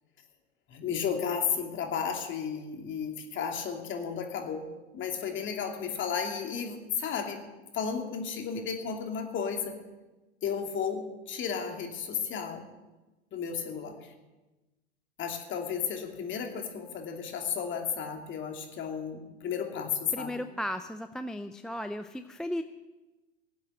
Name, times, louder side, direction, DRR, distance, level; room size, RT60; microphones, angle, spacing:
voice 1, 0.7-4.7 4.9-7.4 7.7-9.7 10.4-12.7 13.3-14.1 15.2-20.4, left 7 dB, 35° left, 3 dB, 2.9 m, -33 dB
voice 2, 20.1-22.6, equal, ahead, 9 dB, 0.4 m, -35 dB
19.5 x 8.4 x 7.7 m, 1.1 s
hypercardioid pair, 100°, 34 cm